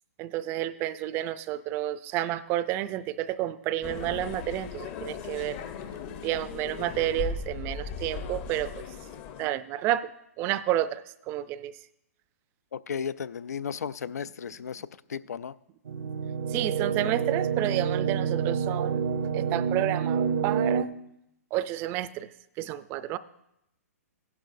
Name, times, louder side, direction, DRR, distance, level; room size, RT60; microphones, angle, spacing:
voice 1, 0.2-5.6 6.2-8.8 9.4-10.1 10.4-11.8 16.5-19.0 19.3-20.9 21.5-22.3 22.6-23.2, right 13 dB, 25° right, 0.4 m, -30 dB
sound 1, 3.8-9.5, left 6 dB, 35° left, 0.7 m, -37 dB
voice 2, 12.7-15.5, left 7 dB, 85° left, 0.4 m, -35 dB
sound 2, 15.9-20.8, right 7 dB, 70° right, 0.7 m, -28 dB
15.5 x 11.0 x 2.6 m
hypercardioid pair, 140°, 8 cm